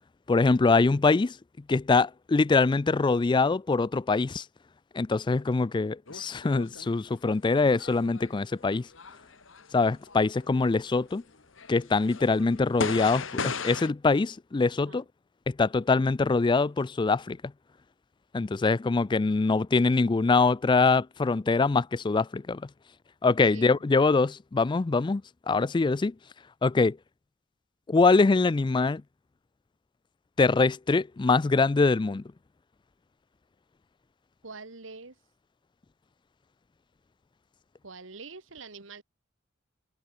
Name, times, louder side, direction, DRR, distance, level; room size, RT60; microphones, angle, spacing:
voice 1, 0.3-1.4 1.7-4.4 4.9-8.9 9.7-11.2 11.7-15.0 15.5-17.4 18.3-22.6 23.2-25.2 25.5-26.1 26.6-27.0 27.9-29.0 30.4-32.2, left 3 dB, 25° left, 0.4 m, -23 dB
sound 1, 6.1-7.0 7.5-11.2 11.6-13.9, left 4 dB, 70° left, 2.3 m, -37 dB
voice 2, 34.4-35.2 37.8-39.0, right 4 dB, 70° right, 1.9 m, -44 dB
head